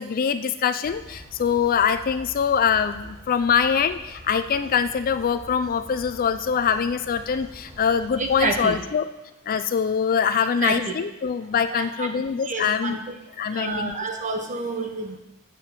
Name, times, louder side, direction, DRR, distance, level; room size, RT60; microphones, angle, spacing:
voice 1, 0.0-9.1 9.5-13.0 13.4-14.0, left 7 dB, 40° left, 12 dB, 0.4 m, -23 dB
sound 1, 0.8-8.8, equal, 10° right, 2.4 m, -45 dB
voice 2, 8.2-8.8 10.4-10.9 11.7-12.1 12.4-13.2 13.5-15.2, right 2 dB, 35° right, 4 dB, 1.0 m, -29 dB
7.3 x 5.9 x 7.4 m, 0.95 s
head